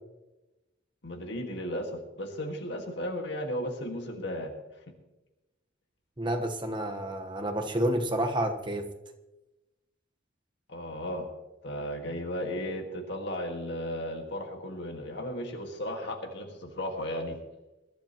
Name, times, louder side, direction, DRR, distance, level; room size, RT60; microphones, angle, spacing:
voice 1, 1.0-4.5 10.7-11.3 11.6-17.4, equal, 60° left, 4 dB, 1.7 m, -35 dB
voice 2, 6.2-8.9, right 1 dB, 25° right, 4 dB, 1.1 m, -29 dB
21.0 x 12.0 x 2.9 m, 1.0 s
head